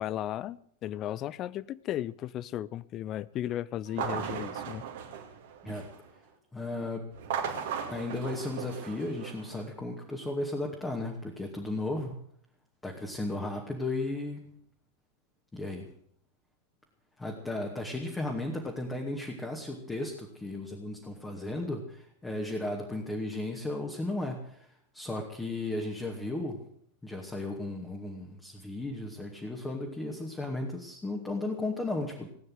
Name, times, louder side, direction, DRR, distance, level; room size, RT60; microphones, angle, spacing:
voice 1, 0.0-4.8, left 12 dB, 35° left, 0.6 m, -35 dB
sound 1, 3.9-6.1 7.1-9.6, right 7 dB, 50° right, 2.4 m, -37 dB
voice 2, 6.5-7.1 7.9-12.2 12.8-14.4 15.5-15.9 17.2-26.6 27.0-32.3, left 2 dB, 10° left, 2.4 m, -35 dB
18.5 x 9.3 x 7.9 m
figure-of-eight pair, 90°, 0 cm